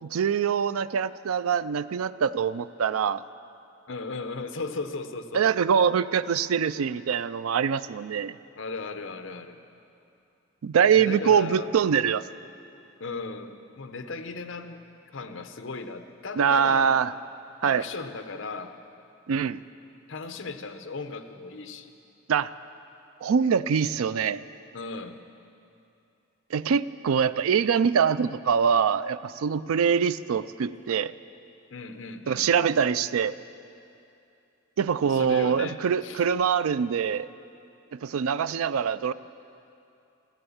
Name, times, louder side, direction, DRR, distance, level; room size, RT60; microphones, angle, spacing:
voice 1, 0.0-3.2 5.3-8.3 10.6-12.2 16.4-17.1 17.6-17.8 19.3-19.6 22.3-22.5 23.2-24.4 26.5-31.1 32.3-33.4 34.8-37.3 38.0-39.1, right 7 dB, 85° right, 16 dB, 0.4 m, -24 dB
voice 2, 3.9-5.5 8.6-9.6 10.9-11.7 13.0-14.8 15.1-17.0 17.6-18.7 20.1-21.9 24.7-25.2 31.7-32.7 35.1-36.3, left 3 dB, 65° left, 8 dB, 0.8 m, -36 dB
14.0 x 12.5 x 7.1 m, 2.7 s
head